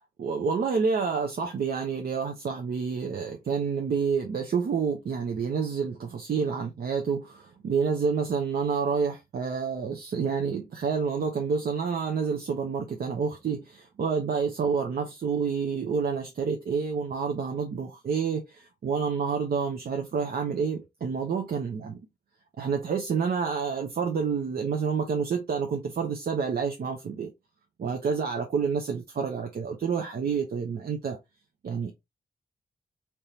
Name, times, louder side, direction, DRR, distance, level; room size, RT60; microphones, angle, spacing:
voice 1, 0.2-22.0 22.6-27.3 27.8-31.2 31.6-31.9, right 6 dB, 65° right, 0.6 m, -28 dB
3.4 x 2.9 x 2.7 m
wide cardioid pair, 105°, 17 cm